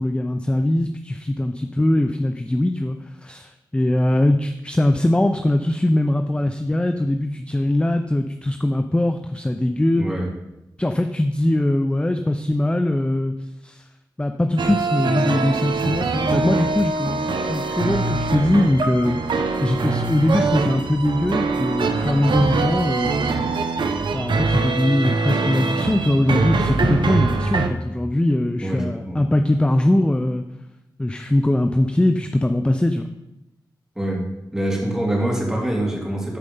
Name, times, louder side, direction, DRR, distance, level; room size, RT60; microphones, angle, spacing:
voice 1, 0.0-3.0 3.2-10.0 10.8-13.3 13.6-13.8 14.2-23.7 24.1-30.4 31.0-33.1, left 1 dB, 15° left, 7 dB, 0.6 m, -21 dB
voice 2, 10.0-10.3 28.6-29.2 33.9-34.2 34.5-36.4, right 1 dB, 5° right, -2 dB, 3.2 m, -24 dB
sound 1, 14.6-27.7, right 4 dB, 80° right, 0.9 m, -23 dB
sound 2, 15.4-23.4, left 1 dB, 55° left, 4.1 m, -44 dB
13.5 x 4.8 x 5.4 m, 0.92 s
cardioid pair, 70°, 8 cm